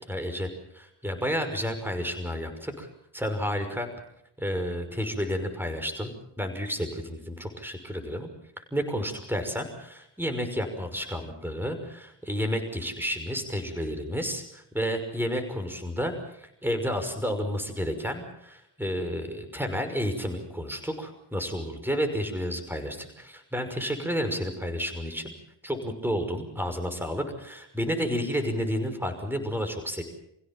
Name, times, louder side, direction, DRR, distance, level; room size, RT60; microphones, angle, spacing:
voice 1, 0.1-2.9 3.1-3.9 4.4-6.1 6.4-8.3 8.6-25.3 25.6-30.0, equal, 5° right, 7 dB, 5.8 m, -31 dB
27.5 x 16.5 x 7.5 m, 0.77 s
cardioid pair, 55°, 42 cm